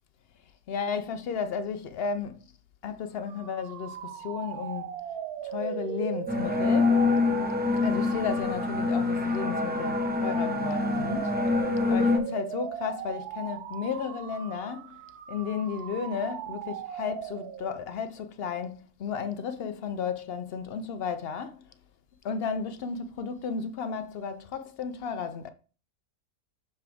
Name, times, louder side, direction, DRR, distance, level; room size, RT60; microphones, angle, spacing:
voice 1, 0.7-2.4 2.8-5.0 5.4-7.0 7.8-11.4 11.9-15.0 15.3-21.6 22.2-25.5, left 6 dB, 75° left, 0.5 m, -33 dB
sound 1, 3.2-17.9, right 10 dB, 85° right, 1.2 m, -38 dB
sound 2, 6.3-12.2, left 3 dB, 10° right, 0.5 m, -26 dB
6.2 x 5.4 x 3.4 m
omnidirectional pair, 1.6 m